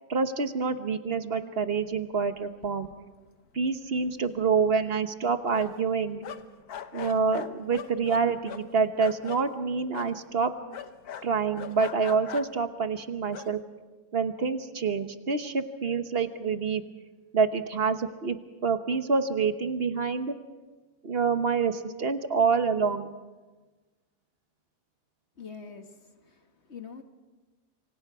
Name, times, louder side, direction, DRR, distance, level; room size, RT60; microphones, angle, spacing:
voice 1, 0.1-2.9 3.5-6.3 6.9-10.5 11.2-13.6 14.1-16.8 17.3-20.3 21.0-23.1, right 5 dB, 40° right, 9 dB, 1.2 m, -27 dB
sound 1, 2.3-2.4 2.6-3.3 3.6-3.7 4.0-5.9 6.2-9.4 9.9-10.2 10.7-12.7 13.2-13.5, left 9 dB, 70° left, 1.4 m, -41 dB
voice 2, 25.4-27.0, left 5 dB, 45° left, 6 dB, 1.7 m, -45 dB
27.0 x 25.0 x 4.9 m, 1.3 s
omnidirectional pair, 1.7 m